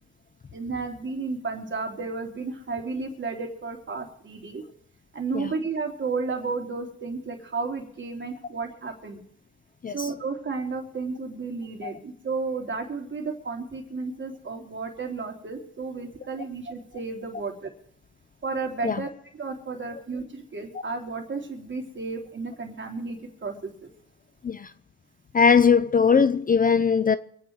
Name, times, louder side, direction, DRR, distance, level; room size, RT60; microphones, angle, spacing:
voice 1, 0.5-4.6 5.1-9.2 9.9-17.7 18.4-23.7, right 4 dB, 40° right, 3.5 m, -33 dB
voice 2, 25.3-27.2, left 6 dB, 30° left, 0.6 m, -20 dB
25.0 x 9.2 x 4.7 m
cardioid pair, 90°, 30 cm